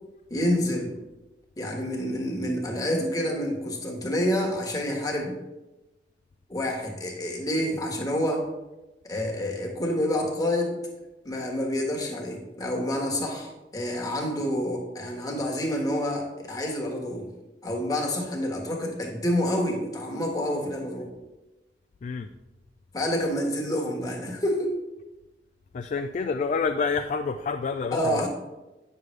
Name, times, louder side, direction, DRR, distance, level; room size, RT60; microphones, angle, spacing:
voice 1, 0.3-0.9 1.6-5.4 6.5-8.5 9.0-10.8 11.2-17.3 17.6-21.1 22.9-24.7 27.9-28.3, left 1 dB, 20° left, 0 dB, 1.4 m, -28 dB
voice 2, 22.0-22.3 25.7-28.3, left 5 dB, 45° left, 7 dB, 0.3 m, -28 dB
9.1 x 6.5 x 3.2 m, 1.1 s
head